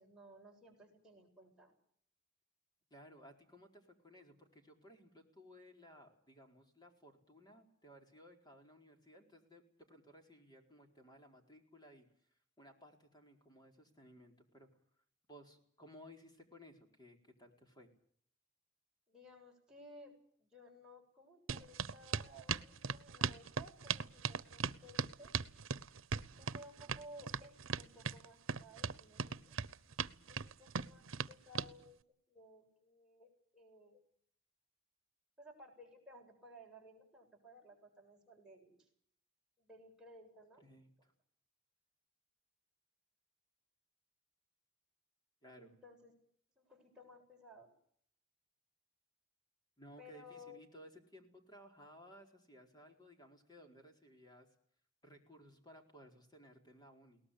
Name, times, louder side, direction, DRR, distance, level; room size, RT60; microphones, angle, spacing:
voice 1, 0.0-1.7 19.1-25.3 26.4-29.6 30.3-34.0 35.4-38.9 39.6-40.7 45.6-46.1 46.6-47.7 50.0-50.6, equal, 5° right, -2 dB, 7.6 m, -58 dB
voice 2, 2.9-12.1 12.6-14.7 15.3-17.9 40.6-41.1 45.4-45.7 49.8-54.5 55.0-57.2, equal, 20° left, 3 dB, 4.5 m, -59 dB
sound 1, 21.5-31.7, right 6 dB, 85° right, 0.9 m, -39 dB
22.5 x 19.0 x 8.5 m, 0.64 s
head